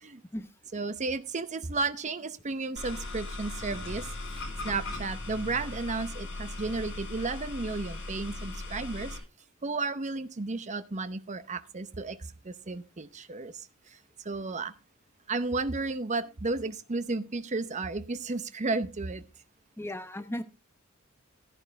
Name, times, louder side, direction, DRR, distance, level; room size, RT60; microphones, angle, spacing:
voice 1, 0.7-4.1 4.4-9.2 9.6-12.2 12.4-13.5 14.2-14.7 15.3-19.2, right 3 dB, 35° right, 0.8 m, -33 dB
sound 1, 2.8-9.2, left 2 dB, 60° left, 6.1 m, -38 dB
voice 2, 19.8-20.4, left 1 dB, 10° left, 0.8 m, -36 dB
12.5 x 11.0 x 3.5 m
head